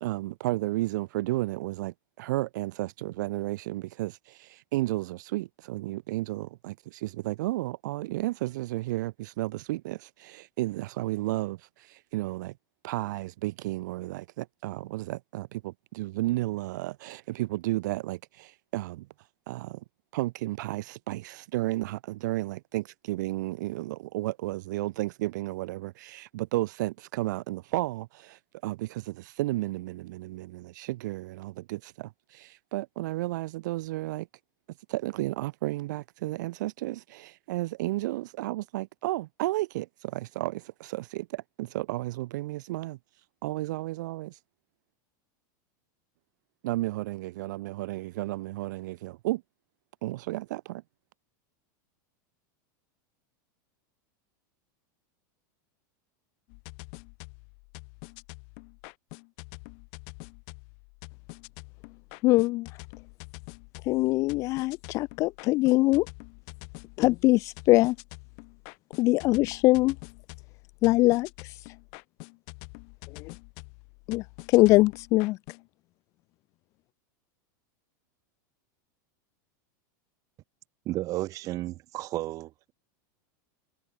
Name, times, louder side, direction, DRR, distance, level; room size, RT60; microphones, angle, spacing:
voice 1, 0.0-12.5 12.8-19.1 19.5-19.8 20.1-34.3 34.9-43.0 43.4-44.4 46.6-49.4 50.0-50.8, right 17 dB, 65° right, 0.5 m, -33 dB
sound 1, 56.5-75.7, left 40 dB or more, 45° left, 7.4 m, -46 dB
voice 2, 62.2-62.7 63.8-66.1 67.0-68.0 69.0-70.0 70.8-71.7 73.1-73.4 74.1-75.4, left 20 dB, 30° left, 0.3 m, -23 dB
voice 3, 80.8-82.5, right 16 dB, 30° right, 2.9 m, -32 dB
supercardioid pair, 165°, 11 cm